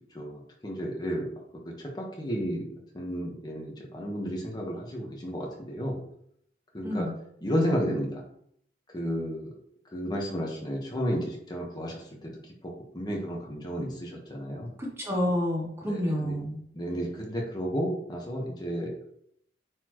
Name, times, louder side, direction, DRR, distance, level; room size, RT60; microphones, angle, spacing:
voice 1, 0.1-1.3 1.6-2.7 2.9-6.0 6.7-7.1 7.4-8.2 8.9-9.6 9.9-12.3 12.6-14.7 15.8-16.4 16.7-19.1, equal, 25° left, 0 dB, 1.3 m, -32 dB
voice 2, 14.8-16.6, equal, 15° right, -2 dB, 1.1 m, -29 dB
9.1 x 4.3 x 3.1 m, 0.69 s
head